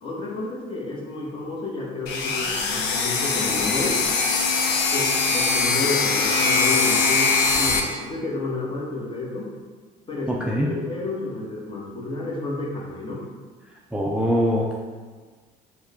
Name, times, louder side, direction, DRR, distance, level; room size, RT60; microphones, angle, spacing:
voice 1, 0.0-4.0 4.9-9.5 10.1-13.2, left 2 dB, 30° left, -4 dB, 1.2 m, -31 dB
sound 1, 2.1-7.8, left 4 dB, 85° left, 0.6 m, -22 dB
voice 2, 10.3-10.7 13.9-14.7, equal, 5° right, -3 dB, 0.4 m, -23 dB
4.7 x 2.3 x 4.1 m, 1.5 s
cardioid pair, 110°, 17 cm